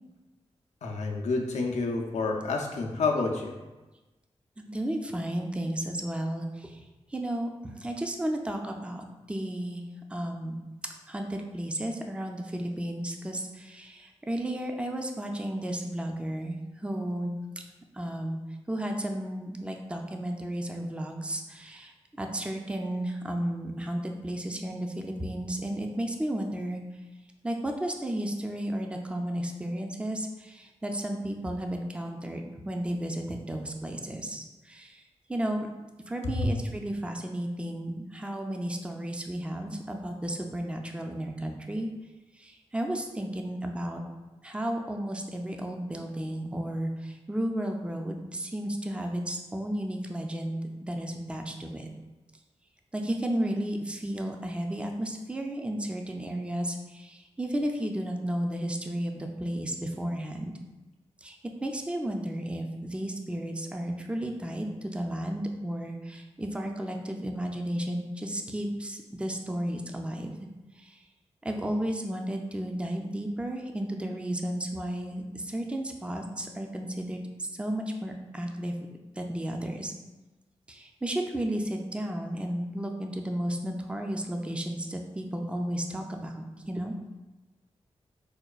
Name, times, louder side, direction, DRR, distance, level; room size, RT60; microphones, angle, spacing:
voice 1, 0.8-3.5 36.2-36.5, left 3 dB, 90° left, 0 dB, 0.4 m, -29 dB
voice 2, 4.6-6.8 7.1-9.8 10.1-10.5 11.1-17.3 17.9-18.4 18.7-26.8 27.4-35.0 35.3-35.7 36.1-41.9 42.4-44.0 44.4-51.9 52.9-60.5 61.2-61.4 61.6-70.3 70.8-70.9 71.4-78.7 79.2-79.9 80.7-87.0, right 1 dB, 10° right, 3 dB, 0.4 m, -33 dB
5.0 x 2.2 x 2.3 m, 1.1 s
cardioid pair, 60°, 11 cm